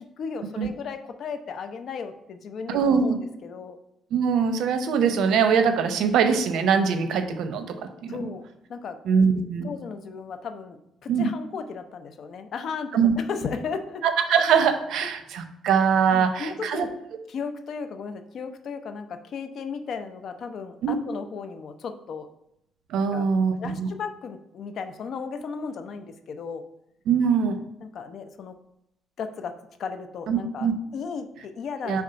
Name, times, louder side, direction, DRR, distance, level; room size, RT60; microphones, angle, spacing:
voice 1, 0.0-3.8 8.1-8.4 8.7-9.0 9.6-14.1 16.1-16.9 17.3-22.3 23.0-23.2 23.6-26.6 27.8-28.6 29.2-32.0, left 5 dB, 60° left, 8 dB, 0.6 m, -35 dB
voice 2, 2.7-3.1 4.1-7.8 8.0-8.3 9.1-9.7 11.1-11.3 12.9-13.1 14.0-16.9 20.8-20.9 22.9-23.9 27.1-27.6 30.3-30.7 31.9-32.0, right 6 dB, 80° right, 9 dB, 0.7 m, -22 dB
5.1 x 3.5 x 5.6 m, 0.80 s
cardioid pair, 95°, 0 cm